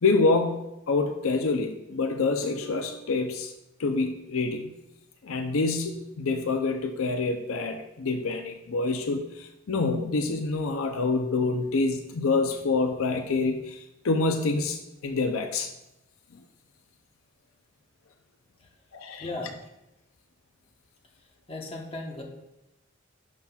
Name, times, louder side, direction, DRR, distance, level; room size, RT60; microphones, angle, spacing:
voice 1, 0.0-3.5 3.8-4.7 5.2-15.7 18.9-19.3, left 3 dB, 75° left, 6 dB, 0.5 m, -27 dB
voice 2, 19.2-19.7 21.5-22.2, left 2 dB, 25° left, 0 dB, 1.0 m, -36 dB
11.0 x 5.8 x 2.3 m, 0.91 s
head